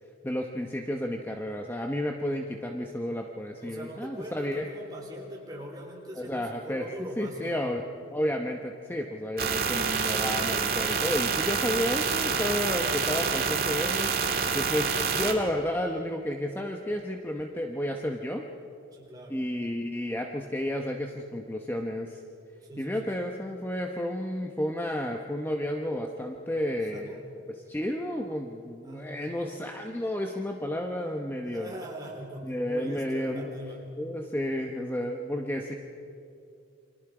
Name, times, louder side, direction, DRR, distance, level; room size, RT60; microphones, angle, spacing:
voice 1, 0.2-4.7 6.2-14.1 14.5-18.5 19.3-22.2 22.8-27.2 27.5-31.7 32.4-33.5 34.0-35.7, left 1 dB, 10° left, 2 dB, 0.9 m, -32 dB
voice 2, 3.6-7.7 12.2-12.6 18.9-19.4 22.7-23.0 26.9-27.2 28.8-29.2 31.4-33.8, right 1 dB, 20° right, -1 dB, 3.7 m, -41 dB
sound 1, 9.4-15.3, right 5 dB, 50° right, 1.9 m, -27 dB
29.0 x 24.5 x 4.9 m, 2.6 s
head